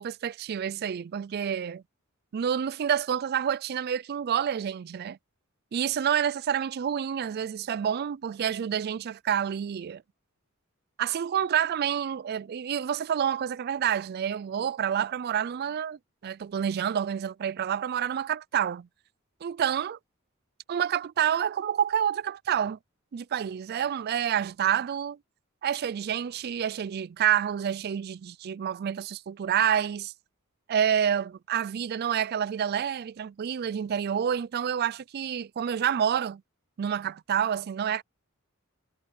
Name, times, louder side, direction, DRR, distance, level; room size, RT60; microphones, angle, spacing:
voice 1, 0.0-1.8 2.3-5.2 5.7-10.0 11.0-18.9 19.4-20.0 20.7-22.8 23.1-25.2 25.6-30.1 30.7-36.4 36.8-38.0, right 9 dB, 50° right, 0.3 m, -28 dB
head